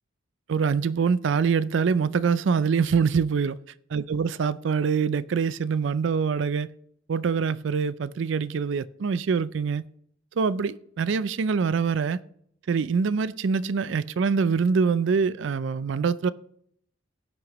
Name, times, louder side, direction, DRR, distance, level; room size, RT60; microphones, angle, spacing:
voice 1, 0.5-3.6 3.9-6.7 7.1-9.9 10.4-12.2 12.7-16.3, right 5 dB, 70° right, 0.4 m, -24 dB
16.5 x 6.2 x 3.0 m
head